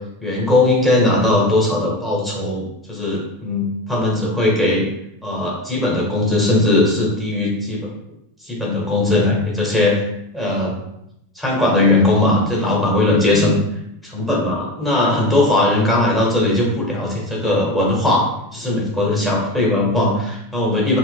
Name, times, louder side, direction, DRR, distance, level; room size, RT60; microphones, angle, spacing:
voice 1, 0.2-4.9 5.2-7.9 8.4-10.1 10.3-10.8 11.3-13.6 14.0-18.3 18.5-21.0, left 2 dB, 10° left, -5 dB, 1.3 m, -18 dB
4.3 x 2.9 x 2.3 m, 0.82 s
figure-of-eight pair, 90°, 0 cm